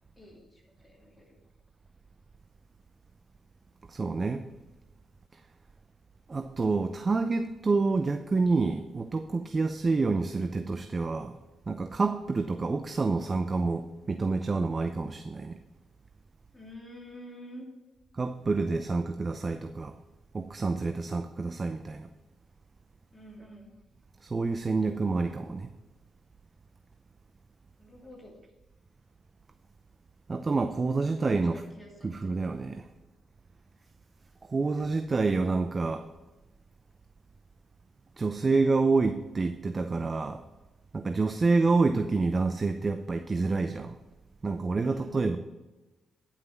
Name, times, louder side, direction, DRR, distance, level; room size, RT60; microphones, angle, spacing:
voice 1, 0.2-1.4 16.5-17.7 23.1-23.7 27.8-28.4 31.4-32.1 44.8-45.2, equal, 25° left, -2 dB, 2.9 m, -48 dB
voice 2, 3.9-4.5 6.3-11.3 11.7-15.6 18.1-19.9 20.3-22.1 24.2-25.7 30.3-31.6 32.0-32.9 34.5-36.1 38.2-40.4 40.9-44.0 44.4-45.4, right 3 dB, 40° right, 8 dB, 0.6 m, -28 dB
10.5 x 5.8 x 5.8 m, 1.1 s
supercardioid pair, 55°, 0 cm